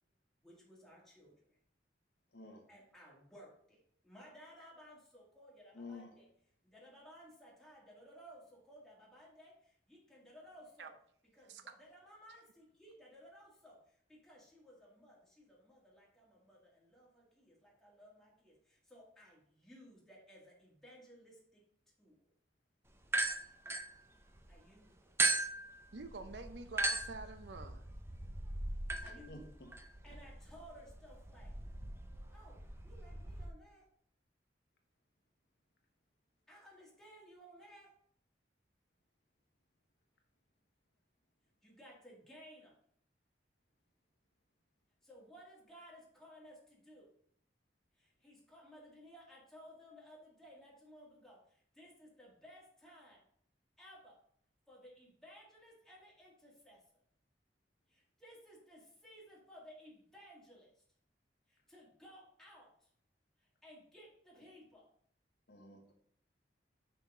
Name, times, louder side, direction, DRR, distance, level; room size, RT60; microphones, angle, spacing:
voice 1, 0.4-1.6 2.7-6.3 6.6-10.9 11.3-21.6 22.0-22.2 24.5-25.1 29.0-29.5 30.0-31.5 32.3-33.9 36.5-38.0 41.6-42.8 45.0-47.1 48.0-53.2 53.8-54.2 54.7-57.0 57.9-60.8 61.5-62.9 63.4-64.9, equal, 5° left, 2.1 m, -58 dB
voice 2, 5.7-6.1 29.0-29.7 65.5-65.9, left 3 dB, 65° left, 1.3 m, -51 dB
sound 1, 23.0-24.5 25.2-33.5, right 2 dB, 15° right, 0.5 m, -38 dB
voice 3, 25.9-27.9, right 3 dB, 80° right, 0.6 m, -47 dB
5.8 x 5.8 x 3.7 m
head